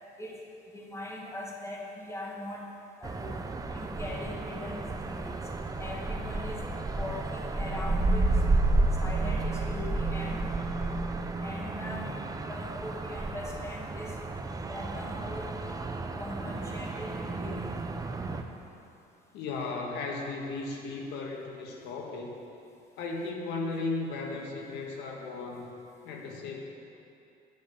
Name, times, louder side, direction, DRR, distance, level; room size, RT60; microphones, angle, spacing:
voice 1, 0.7-2.7 3.0-5.4 5.8-6.7 7.0-8.4 8.9-10.5 10.8-14.2 14.7-15.8 16.2-17.9, left 1 dB, 15° left, -2 dB, 2.0 m, -41 dB
sound 1, 3.0-18.4, right 2 dB, 20° right, 0.8 m, -31 dB
voice 2, 19.3-22.4 23.0-25.7 26.0-26.6, left 3 dB, 85° left, 1 dB, 1.6 m, -35 dB
10.5 x 7.3 x 8.5 m, 2.7 s
cardioid pair, 110°, 17 cm